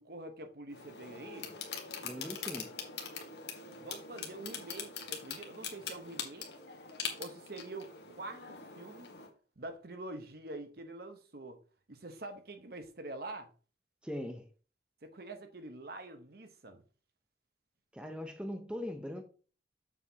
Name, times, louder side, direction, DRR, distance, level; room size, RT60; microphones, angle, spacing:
voice 1, 0.0-1.5 3.8-6.5 7.2-9.1 9.6-11.6 11.9-13.5 15.0-16.8, right 2 dB, 55° right, 1.0 m, -46 dB
sound 1, 0.7-9.3, left 6 dB, 65° left, 1.3 m, -43 dB
voice 2, 2.0-2.7 14.0-14.5 17.9-19.2, equal, 5° right, 0.6 m, -40 dB
7.2 x 6.5 x 2.8 m
head